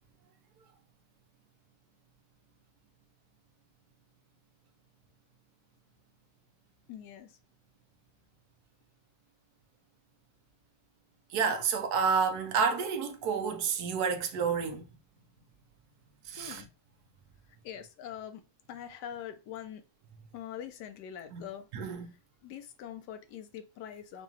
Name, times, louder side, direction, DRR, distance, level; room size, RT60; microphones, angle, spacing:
voice 1, 6.9-7.4 16.4-16.7 17.6-18.4 18.7-19.8 20.3-21.7 22.4-24.2, left 9 dB, 75° left, 1.2 m, -43 dB
voice 2, 11.3-14.9 16.3-16.6 21.3-21.4 21.7-22.1, right 6 dB, 70° right, 1.2 m, -29 dB
5.9 x 2.3 x 2.7 m
omnidirectional pair, 1.9 m